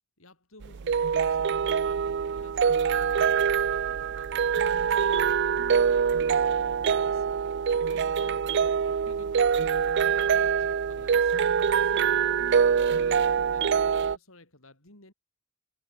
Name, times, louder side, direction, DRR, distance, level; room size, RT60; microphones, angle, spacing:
voice 1, 0.2-7.3 7.9-8.6 8.9-11.4 11.8-15.1, left 2 dB, 70° left, 7.7 m, -53 dB
sound 1, 0.6-14.2, right 7 dB, 55° right, 0.4 m, -24 dB
head